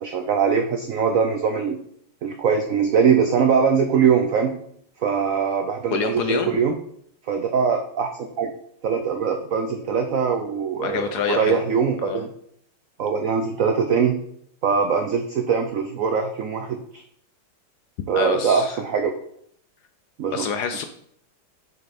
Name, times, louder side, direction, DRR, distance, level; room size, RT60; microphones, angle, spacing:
voice 1, 0.0-1.8 2.2-4.5 5.0-6.8 7.3-8.5 8.8-12.3 13.0-14.1 14.6-17.0 18.1-19.1 20.2-20.4, right 6 dB, 85° right, 5 dB, 0.7 m, -22 dB
voice 2, 5.9-6.5 10.8-11.6 12.0-12.2 18.1-18.8 20.3-20.9, left 6 dB, 70° left, 7 dB, 1.0 m, -26 dB
6.6 x 6.6 x 4.2 m, 0.68 s
omnidirectional pair, 2.2 m